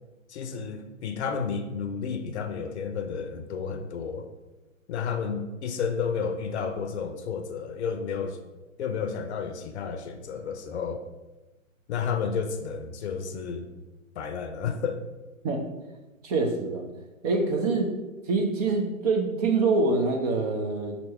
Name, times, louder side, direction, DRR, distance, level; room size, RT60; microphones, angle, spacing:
voice 1, 0.3-4.3 4.9-8.4 8.8-11.0 11.9-13.7 14.2-15.1, left 6 dB, 55° left, 7 dB, 0.6 m, -31 dB
voice 2, 16.2-16.9 17.2-17.9 18.3-21.0, right 3 dB, 30° right, 2 dB, 0.5 m, -25 dB
4.4 x 2.9 x 4.2 m, 1.1 s
hypercardioid pair, 120°, 40 cm